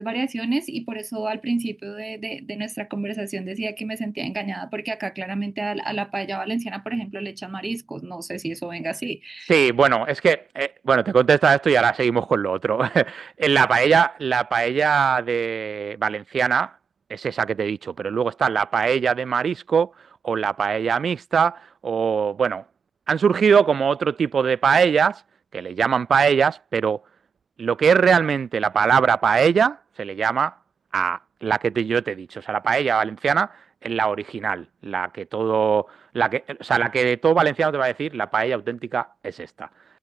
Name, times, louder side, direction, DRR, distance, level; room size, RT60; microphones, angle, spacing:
voice 1, 0.0-9.5, right 3 dB, 30° right, 1.7 m, -29 dB
voice 2, 9.5-16.7 17.1-19.9 20.2-22.6 23.1-25.2 25.5-27.0 27.6-30.5 30.9-35.9 36.1-39.7, right 6 dB, 75° right, 0.5 m, -21 dB
wide cardioid pair, 105°, 0 cm